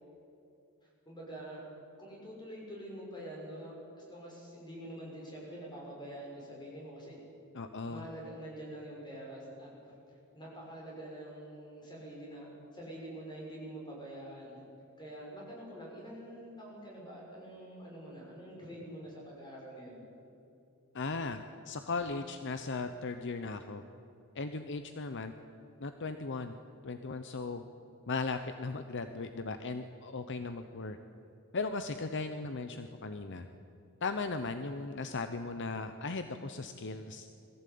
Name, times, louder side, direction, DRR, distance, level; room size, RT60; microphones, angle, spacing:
voice 1, 0.8-1.6 2.0-7.2 7.9-12.5 12.7-14.6 15.0-20.0, right 1 dB, 20° left, -3 dB, 6.6 m, -46 dB
voice 2, 7.5-8.0 20.9-21.4 21.7-23.8 24.3-25.3 25.8-26.6 26.8-27.6 28.1-31.0 31.5-33.5 34.0-37.3, left 3 dB, 55° left, 8 dB, 0.8 m, -37 dB
21.5 x 15.5 x 8.6 m, 2.8 s
head